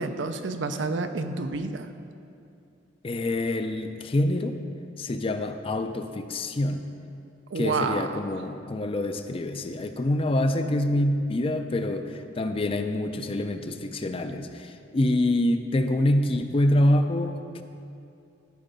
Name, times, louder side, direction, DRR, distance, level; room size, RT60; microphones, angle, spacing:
voice 1, 0.0-1.9 7.5-8.2, right 3 dB, 85° right, 8 dB, 0.6 m, -29 dB
voice 2, 3.0-4.6 5.0-6.9 7.6-17.6, left 1 dB, 30° left, 8 dB, 0.4 m, -26 dB
13.0 x 4.5 x 5.2 m, 2.6 s
head